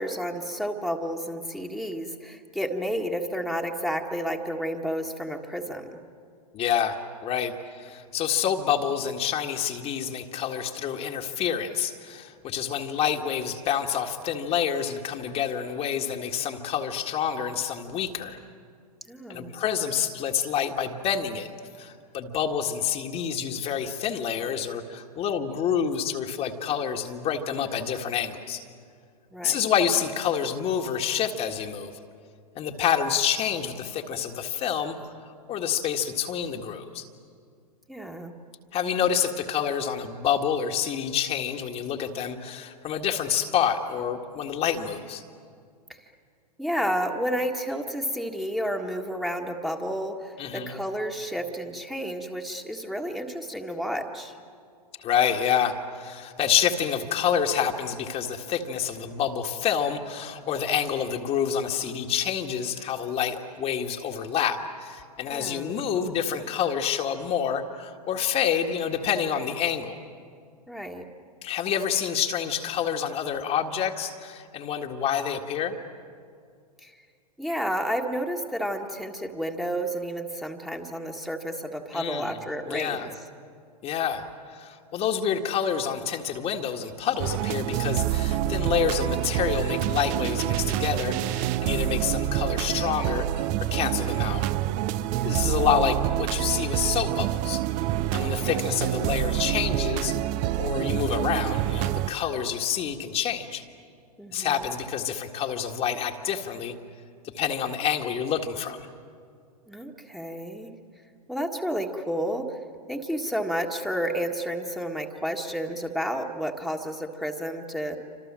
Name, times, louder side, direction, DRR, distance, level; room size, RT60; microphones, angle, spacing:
voice 1, 0.0-6.0 19.1-19.6 29.3-29.6 37.9-38.3 45.9-46.1 46.6-54.4 65.3-65.8 70.7-71.1 76.8-76.9 77.4-83.1 95.1-95.5 98.4-98.9 104.2-104.7 109.7-110.7 111.3-112.6 112.9-118.0, equal, ahead, 1 dB, 1.8 m, -31 dB
voice 2, 6.5-7.0 7.2-18.4 19.3-21.5 21.7-28.6 29.4-31.9 32.6-37.1 38.7-45.2 50.4-50.7 55.0-70.0 71.4-75.8 81.9-82.4 82.7-83.1 83.8-94.4 95.2-97.6 98.1-100.2 100.6-103.6 104.3-106.7 107.3-108.9, left 8 dB, 30° left, 3 dB, 1.8 m, -28 dB
sound 1, 87.2-102.1, right 13 dB, 40° right, 0.8 m, -27 dB
28.5 x 26.0 x 7.6 m, 2.3 s
hypercardioid pair, 110°, 20 cm